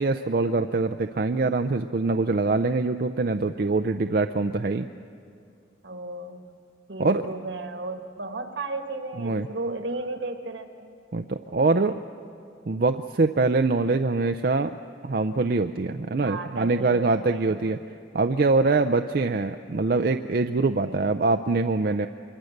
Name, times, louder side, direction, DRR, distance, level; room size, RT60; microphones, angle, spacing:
voice 1, 0.0-4.9 7.0-7.3 9.2-9.5 11.1-12.0 12.7-14.8 15.0-17.8 18.1-22.1, right 3 dB, 50° right, 7 dB, 0.5 m, -24 dB
voice 2, 5.8-6.6 6.9-10.9 16.1-17.6 18.7-19.0 20.9-21.0, right 2 dB, 75° right, 6 dB, 1.7 m, -34 dB
25.5 x 23.0 x 6.6 m, 2.4 s
head